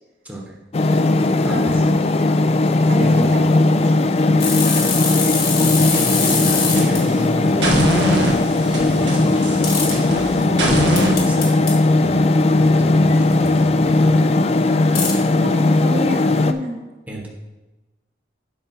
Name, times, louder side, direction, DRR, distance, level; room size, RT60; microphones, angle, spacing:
voice 1, 0.2-0.6 0.8-1.7 3.0-3.5 5.6-11.6 12.0-15.0 17.1-17.3, right 1 dB, 10° right, -3 dB, 1.0 m, -31 dB
sound 1, 0.7-16.5, left 2 dB, 35° left, 0.4 m, -17 dB
voice 2, 2.9-3.9 15.4-16.7, equal, 55° right, 2 dB, 1.5 m, -28 dB
sound 2, 4.4-7.0 9.6-9.9 11.0-11.7 13.3-13.5 14.9-15.1, left 5 dB, 55° left, 1.8 m, -23 dB
sound 3, 5.8-7.2 7.6-11.2, right 1 dB, 70° right, 1.7 m, -23 dB
8.1 x 4.9 x 5.9 m, 1.1 s
head